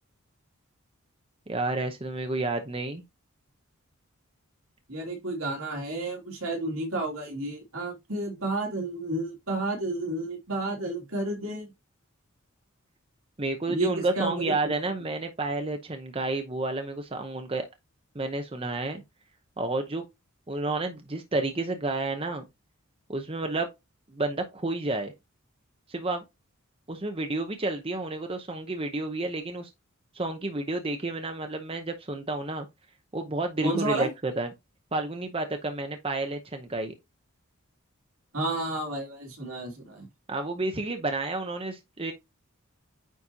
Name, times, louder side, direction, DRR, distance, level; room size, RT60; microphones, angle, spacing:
voice 1, 1.5-3.0 13.4-17.7 18.1-19.0 19.6-20.0 20.5-22.4 23.1-23.7 24.1-25.1 25.9-26.2 26.9-29.7 30.1-32.7 33.1-34.5 34.9-36.9 40.3-42.1, right 2 dB, 25° right, 0.8 m, -30 dB
voice 2, 4.9-11.7 13.7-14.5 33.6-34.1 38.3-40.1, right 2 dB, 75° right, 2.8 m, -31 dB
9.2 x 4.2 x 2.8 m
head